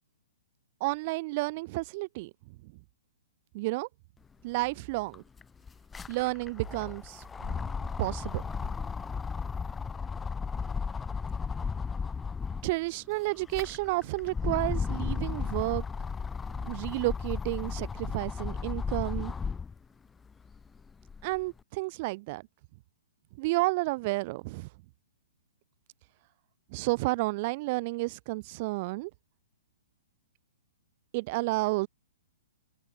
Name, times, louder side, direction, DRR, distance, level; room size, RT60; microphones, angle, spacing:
voice 1, 0.8-2.3 3.5-3.9 4.4-5.2 6.1-7.7 8.0-8.4 12.6-15.8 16.6-19.3 21.2-22.4 23.4-24.7 26.7-29.1 31.1-31.9, right 23 dB, 40° right, 0.7 m, -31 dB
sound 1, 4.6-4.7 5.0-12.8 13.3-19.8 20.3-21.4, left 5 dB, 10° left, 1.6 m, -35 dB
figure-of-eight pair, 115°, 0 cm